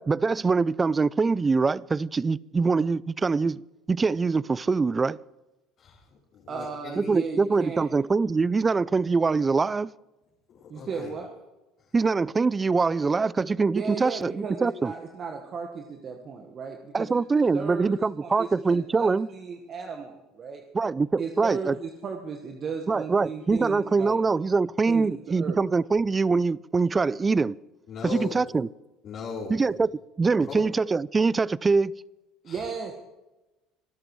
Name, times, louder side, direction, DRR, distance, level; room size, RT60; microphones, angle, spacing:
voice 1, 0.0-5.2 7.0-9.9 11.9-14.9 16.9-19.3 20.7-21.8 22.9-27.5 28.0-28.7 29.5-29.9 30.2-31.9, right 4 dB, 25° right, 0.4 m, -24 dB
voice 2, 5.8-7.2 10.5-11.1 27.9-28.4 29.0-29.8 30.4-30.6 32.4-32.8, left 5 dB, 55° left, 3.7 m, -39 dB
voice 3, 6.5-7.8 10.7-11.3 13.7-17.2 17.5-17.9 18.2-20.6 21.2-24.2 24.9-25.6 32.4-32.9, right 5 dB, 45° right, 1.5 m, -35 dB
25.0 x 13.0 x 3.2 m
hypercardioid pair, 75°, 0 cm